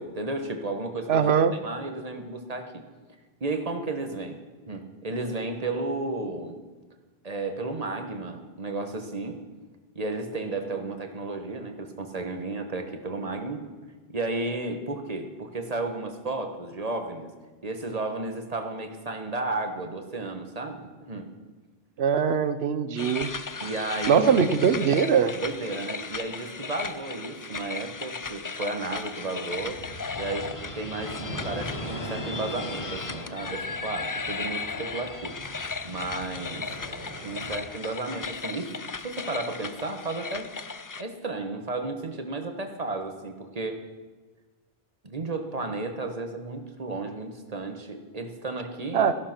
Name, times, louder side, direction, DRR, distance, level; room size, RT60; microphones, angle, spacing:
voice 1, 0.0-1.3 1.6-2.8 3.4-6.6 7.2-9.4 9.9-13.6 14.1-17.3 17.6-21.3 23.6-24.5 25.3-29.8 30.2-31.2 31.4-35.4 35.8-36.7 37.2-38.7 39.0-40.5 41.0-43.8 45.0-49.1, right 2 dB, 40° right, 6 dB, 1.4 m, -33 dB
voice 2, 1.1-1.5 22.0-23.3 24.1-25.4 48.9-49.1, right 7 dB, 75° right, 12 dB, 1.0 m, -22 dB
sound 1, 23.0-41.0, left 4 dB, 30° left, 0.3 m, -36 dB
sound 2, 29.5-37.6, equal, 85° left, 6.1 m, -39 dB
15.5 x 11.5 x 6.0 m, 1.3 s
omnidirectional pair, 1.1 m